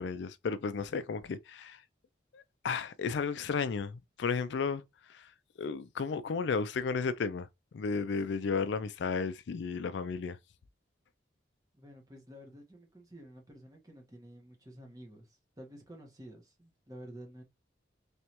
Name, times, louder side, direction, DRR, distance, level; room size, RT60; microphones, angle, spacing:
voice 1, 0.0-1.8 2.3-4.8 5.1-5.3 5.6-7.5 7.7-10.4, left 5 dB, 75° left, 0.4 m, -33 dB
voice 2, 11.7-17.4, equal, 20° right, 1.2 m, -51 dB
3.4 x 3.2 x 2.9 m
head